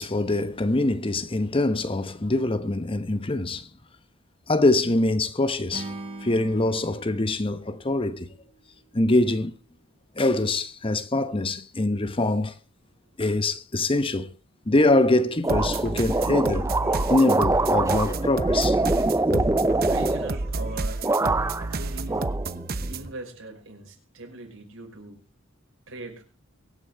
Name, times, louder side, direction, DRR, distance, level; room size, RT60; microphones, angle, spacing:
voice 1, 0.0-3.7 4.5-5.9 6.2-8.3 8.9-9.5 10.2-12.5 13.2-14.3 14.7-16.7 17.1-18.8 19.2-19.5, left 2 dB, 25° left, 0.9 m, -24 dB
Acoustic guitar / Strum, 5.7-9.0, right 2 dB, 30° right, 3.3 m, -41 dB
sound 1, 15.4-20.7 21.0-21.8 22.1-23.0, right 2 dB, 15° right, 0.6 m, -24 dB
sound 2, 15.5-23.1, right 2 dB, 50° right, 0.9 m, -30 dB
voice 2, 19.8-22.2 22.9-25.2 25.9-26.2, right 2 dB, 85° right, 5.8 m, -41 dB
23.5 x 9.0 x 3.8 m
head